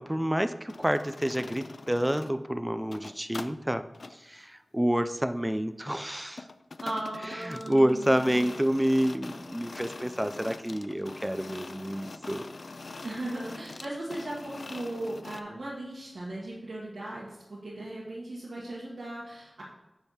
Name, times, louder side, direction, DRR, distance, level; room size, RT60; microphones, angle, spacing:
voice 1, 0.0-3.8 4.1-6.5 7.2-12.4, equal, 10° right, 10 dB, 0.3 m, -28 dB
sound 1, 0.7-2.4 2.8-3.5 3.9-4.2 6.4-15.4, left 3 dB, 70° left, 0.3 m, -43 dB
voice 2, 6.8-8.5 13.0-19.6, right 1 dB, 80° right, -7 dB, 1.5 m, -37 dB
9.1 x 3.5 x 5.5 m, 1.0 s
wide cardioid pair, 60°, 0 cm